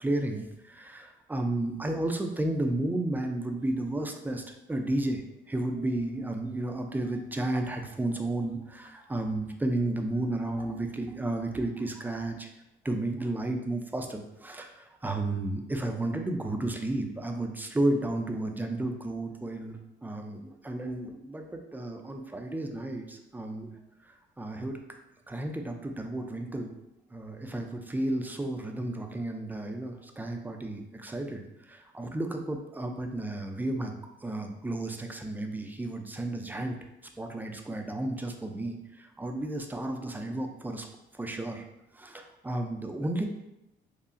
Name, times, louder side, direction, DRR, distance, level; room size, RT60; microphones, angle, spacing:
voice 1, 0.0-12.5 12.8-23.7 24.1-24.8 25.3-26.7 27.1-36.8 37.2-40.9 41.1-41.6 41.9-43.3, right 1 dB, 10° right, 4 dB, 0.4 m, -32 dB
5.4 x 2.0 x 2.5 m, 0.88 s
cardioid pair, 90°, 20 cm